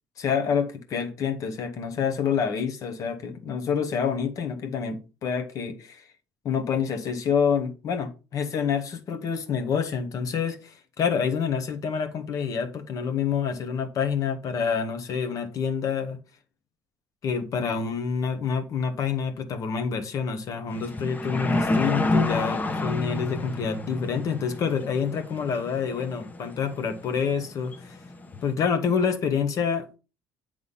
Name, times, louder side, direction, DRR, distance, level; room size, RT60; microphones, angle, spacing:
voice 1, 0.2-6.0 6.4-16.2 17.2-28.0 28.4-30.0, left 6 dB, 55° left, 1.4 m, -27 dB
sound 1, 20.7-28.5, left 2 dB, 25° left, 1.0 m, -29 dB
8.3 x 3.6 x 5.5 m
supercardioid pair, 85°, 7 cm